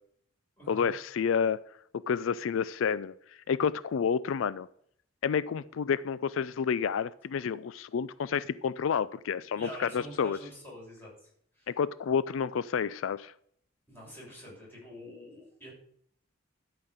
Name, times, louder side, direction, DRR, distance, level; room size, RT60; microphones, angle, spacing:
voice 1, 0.7-1.6 2.1-3.1 3.5-4.7 5.2-10.4 11.7-13.3, left 6 dB, 80° left, 17 dB, 0.4 m, -29 dB
voice 2, 9.5-11.7 13.9-15.7, equal, 10° left, -5 dB, 6.6 m, -46 dB
12.5 x 5.8 x 7.9 m, 0.66 s
head